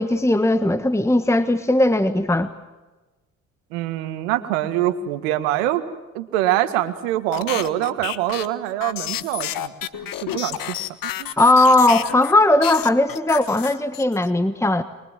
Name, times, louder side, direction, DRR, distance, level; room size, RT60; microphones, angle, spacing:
voice 1, 0.0-2.5 11.4-14.8, left 2 dB, 5° left, 11 dB, 1.4 m, -18 dB
voice 2, 3.7-5.8 6.1-9.7 10.0-10.8 11.2-11.3, right 13 dB, 80° right, 10 dB, 1.8 m, -24 dB
sound 1, 7.3-12.3 12.6-14.3, left 12 dB, 60° left, 1.5 m, -30 dB
24.0 x 23.5 x 7.5 m, 1.2 s
hypercardioid pair, 60°, 39 cm